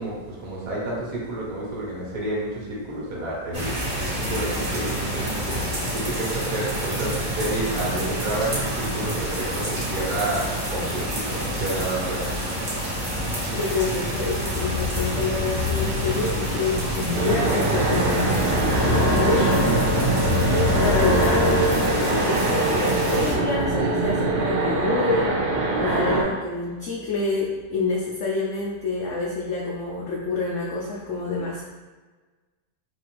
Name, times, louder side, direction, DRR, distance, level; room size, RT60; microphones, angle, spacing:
voice 1, 0.0-12.3, right 2 dB, 60° right, -5 dB, 1.3 m, -30 dB
sound 1, 3.5-23.3, equal, 25° right, 0.6 m, -26 dB
voice 2, 13.5-18.6 19.1-19.6 20.5-25.4 25.8-31.6, left 3 dB, 85° left, -3 dB, 0.6 m, -27 dB
sound 2, 17.1-26.2, right 2 dB, 90° right, 1.3 m, -23 dB
4.1 x 2.5 x 3.0 m, 1.3 s
omnidirectional pair, 1.8 m